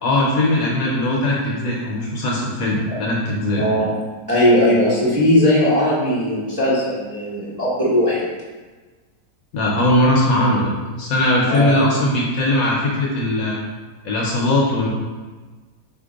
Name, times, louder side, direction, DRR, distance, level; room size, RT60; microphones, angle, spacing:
voice 1, 0.0-3.7 9.5-13.6 14.0-14.9, left 1 dB, 65° left, -3 dB, 1.0 m, -19 dB
voice 2, 3.6-3.9 4.3-8.2 11.5-11.9, left 1 dB, 15° right, -8 dB, 0.9 m, -18 dB
4.1 x 2.8 x 3.8 m, 1.3 s
omnidirectional pair, 1.8 m